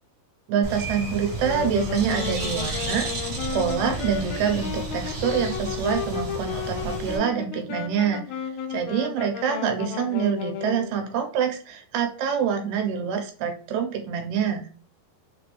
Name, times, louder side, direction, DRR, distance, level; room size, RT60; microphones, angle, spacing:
voice 1, 0.5-14.7, right 7 dB, 90° right, 3 dB, 2.9 m, -26 dB
Bird, 0.6-7.2, right 2 dB, 65° right, 1.2 m, -32 dB
Wind instrument woodwind instrument, 1.3-11.0, left 8 dB, 80° left, 2.2 m, -33 dB
6.1 x 2.5 x 3.2 m, 0.41 s
omnidirectional pair, 4.4 m